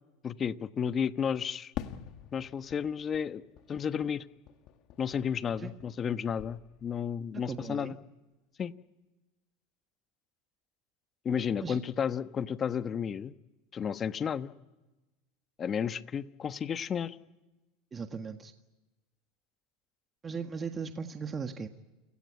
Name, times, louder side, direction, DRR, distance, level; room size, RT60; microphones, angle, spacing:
voice 1, 0.2-1.7 2.3-3.4 3.7-4.2 5.0-8.0 8.6-8.7 11.2-13.3 13.7-14.5 15.6-17.2, left 7 dB, 30° left, 12 dB, 1.1 m, -32 dB
Fireworks, 1.8-6.1 6.4-7.2, left 11 dB, 50° left, 1.7 m, -46 dB
voice 2, 7.5-7.9 11.6-11.8 17.9-18.5 20.2-21.7, right 5 dB, 25° right, 7 dB, 1.6 m, -37 dB
29.0 x 17.0 x 9.7 m, 1.1 s
hypercardioid pair, 105°, 0 cm